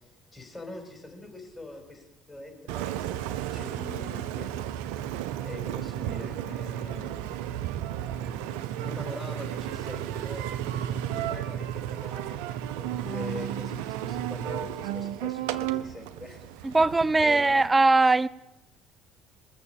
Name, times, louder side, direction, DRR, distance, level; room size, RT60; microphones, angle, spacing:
voice 1, 0.3-4.5 5.4-7.3 8.1-12.4 12.8-16.8 17.2-17.7, left 2 dB, 15° left, 4.7 m, -43 dB
Engine, 2.7-17.7, right 11 dB, 75° right, 0.6 m, -33 dB
voice 2, 16.6-18.3, right 3 dB, 20° right, 0.4 m, -20 dB
19.5 x 7.1 x 7.2 m
hypercardioid pair, 60°, 0 cm